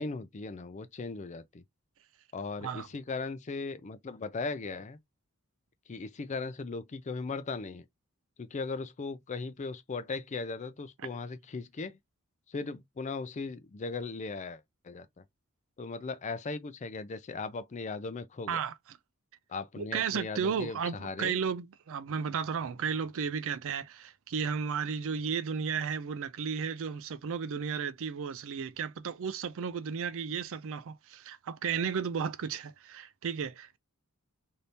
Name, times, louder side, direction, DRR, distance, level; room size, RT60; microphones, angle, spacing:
voice 1, 0.0-1.6 2.3-5.0 5.9-7.9 8.4-12.0 12.5-15.2 15.8-18.6 19.5-21.4, left 4 dB, 35° left, 0.4 m, -38 dB
voice 2, 19.8-33.8, right 6 dB, 65° right, 0.4 m, -34 dB
2.7 x 2.7 x 3.3 m
head